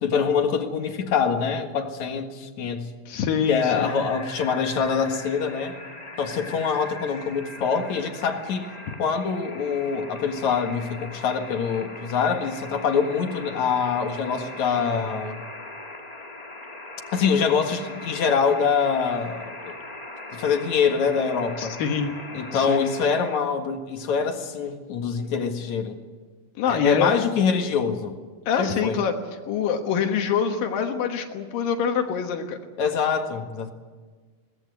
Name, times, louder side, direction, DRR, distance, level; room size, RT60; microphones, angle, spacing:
voice 1, 0.0-2.9 3.5-5.8 6.2-8.7 9.0-15.4 17.1-19.8 20.3-21.7 22.3-26.0 26.7-28.1 28.6-29.0 32.8-33.7, left 6 dB, 60° left, 5 dB, 2.8 m, -24 dB
voice 2, 3.1-4.0 21.6-22.2 22.5-22.9 26.6-27.1 28.5-29.1 29.5-32.6, left 7 dB, 85° left, 4 dB, 3.1 m, -25 dB
sound 1, 3.6-23.4, left 2 dB, 20° left, 1.0 m, -40 dB
22.5 x 19.5 x 8.2 m, 1.4 s
omnidirectional pair, 3.9 m